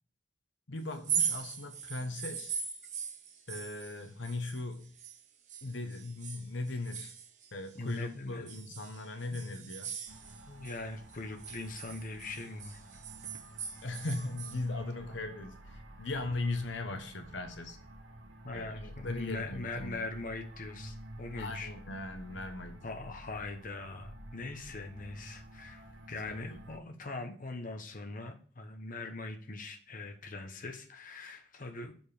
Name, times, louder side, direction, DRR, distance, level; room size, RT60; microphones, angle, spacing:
voice 1, 0.7-2.6 3.5-4.9 5.6-7.1 7.5-9.9 13.8-17.8 18.5-20.0 21.4-22.9 24.7-24.8 26.3-26.6, left 2 dB, 75° left, 1.0 m, -38 dB
sound 1, 0.9-5.2 5.5-8.0 8.5-10.8 11.1-14.6, right 7 dB, 40° right, 1.1 m, -39 dB
voice 2, 7.7-8.5 10.5-12.8 15.1-15.2 18.4-21.7 22.8-31.9, left 3 dB, 45° left, 1.0 m, -41 dB
sound 2, 10.1-26.8, right 1 dB, 80° right, 1.2 m, -50 dB
7.0 x 5.4 x 4.9 m
head